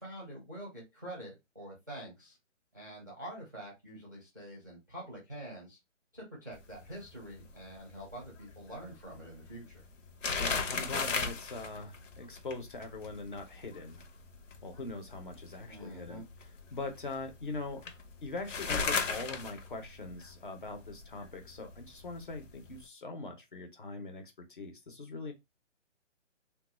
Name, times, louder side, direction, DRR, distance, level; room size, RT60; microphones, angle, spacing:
voice 1, 0.0-2.4 2.7-5.8 6.1-9.8 15.7-16.2, right 1 dB, 15° right, 0.6 m, -46 dB
sound 1, 6.5-22.8, left 5 dB, 75° left, 0.9 m, -39 dB
voice 2, 10.4-14.0 14.6-16.2 16.7-17.8 18.2-25.3, left 3 dB, 40° left, 0.7 m, -42 dB
3.3 x 2.3 x 2.9 m
hypercardioid pair, 175°, 38 cm